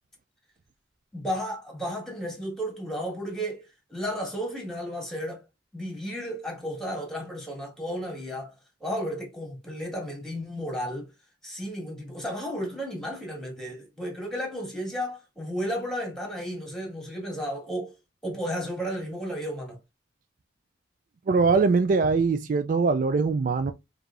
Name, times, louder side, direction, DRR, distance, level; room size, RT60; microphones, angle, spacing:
voice 1, 1.1-5.4 5.7-8.5 8.8-11.1 11.4-17.9 18.2-19.8, equal, 5° left, 1.6 m, -33 dB
voice 2, 21.3-23.7, right 4 dB, 45° right, 0.3 m, -22 dB
4.8 x 2.6 x 2.5 m
head